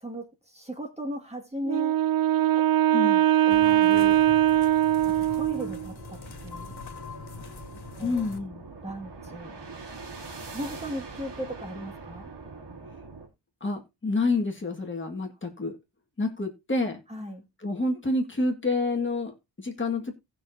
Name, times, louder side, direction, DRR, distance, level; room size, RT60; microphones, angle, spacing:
voice 1, 0.0-2.0 2.4-2.7 3.5-4.2 5.1-6.7 8.0-8.2 8.8-9.6 10.5-12.3 17.1-17.4, equal, 15° right, 2.0 m, -37 dB
Wind instrument woodwind instrument, 1.6-5.9, right 12 dB, 55° right, 0.5 m, -21 dB
voice 2, 2.9-3.2 8.0-8.6 13.6-15.8 16.2-17.0 17.6-20.2, left 3 dB, 30° left, 1.7 m, -28 dB
sound 1, 3.5-8.4, left 4 dB, 60° left, 2.1 m, -43 dB
sound 2, 5.4-13.3, right 3 dB, 80° right, 3.4 m, -43 dB
18.0 x 6.1 x 2.7 m
wide cardioid pair, 180°, 41 cm